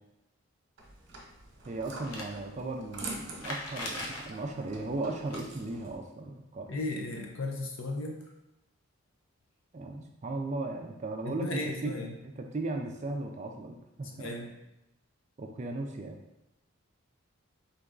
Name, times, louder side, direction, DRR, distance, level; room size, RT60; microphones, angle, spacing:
sound 1, 0.8-5.9, right 2 dB, 50° right, 1.0 m, -45 dB
voice 1, 1.7-6.8 9.7-11.9 12.2-14.3 15.4-16.2, right 2 dB, 30° right, 3 dB, 0.3 m, -36 dB
sound 2, 2.0-2.3 3.4-4.2 5.1-5.4 7.9-8.0 8.2-8.3 9.4-9.5, left 2 dB, 90° left, 0.9 m, -39 dB
voice 2, 6.7-8.2 11.2-12.1 14.2-14.5, left 2 dB, 60° left, 2 dB, 0.5 m, -35 dB
3.9 x 3.4 x 3.7 m, 0.90 s
head